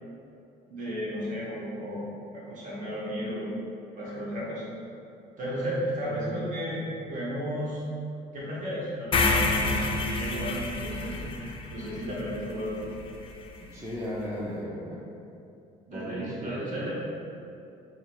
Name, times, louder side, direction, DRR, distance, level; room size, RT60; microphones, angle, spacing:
voice 1, 0.7-2.0 2.3-3.5 4.0-4.6 5.4-6.8 7.1-7.8 8.3-12.9 15.9-16.9, equal, 50° right, -7 dB, 1.4 m, -34 dB
voice 2, 6.0-6.5 13.6-15.0 15.9-16.9, equal, 15° right, -6 dB, 0.6 m, -36 dB
sound 1, 9.1-13.3, left 3 dB, 30° left, 0.4 m, -28 dB
4.6 x 2.4 x 3.5 m, 2.7 s
cardioid pair, 110°, 17 cm